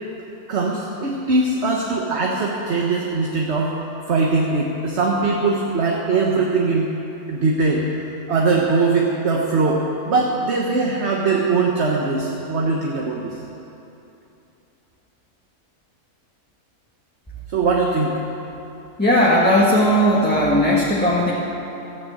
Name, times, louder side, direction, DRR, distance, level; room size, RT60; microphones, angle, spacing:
voice 1, 0.5-3.7 4.1-6.9 7.3-7.8 8.3-13.3 17.5-18.1, right 3 dB, 50° right, -1 dB, 1.4 m, -21 dB
voice 2, 19.0-21.3, equal, 5° left, -6 dB, 1.3 m, -17 dB
13.5 x 9.8 x 7.7 m, 3.0 s
omnidirectional pair, 1.5 m